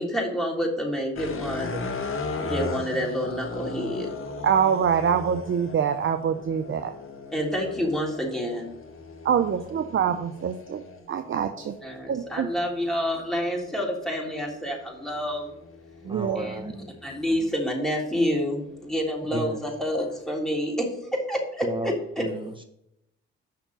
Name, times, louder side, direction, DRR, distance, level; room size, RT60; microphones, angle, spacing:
voice 1, 0.0-1.8 2.4-4.1 7.3-8.7 11.8-15.5 16.3-16.6 17.0-22.2, equal, ahead, -2 dB, 3.3 m, -28 dB
sound 1, 1.2-17.5 18.1-20.6, left 3 dB, 40° left, 1.5 m, -38 dB
voice 2, 4.4-6.9 9.2-10.8 11.1-11.7 12.1-12.5 16.0-16.5, right 8 dB, 40° right, 8 dB, 0.7 m, -25 dB
voice 3, 16.1-16.9 19.3-19.6 21.6-22.6, right 2 dB, 15° right, 5 dB, 1.1 m, -33 dB
6.7 x 5.9 x 6.4 m, 0.79 s
supercardioid pair, 55°, 31 cm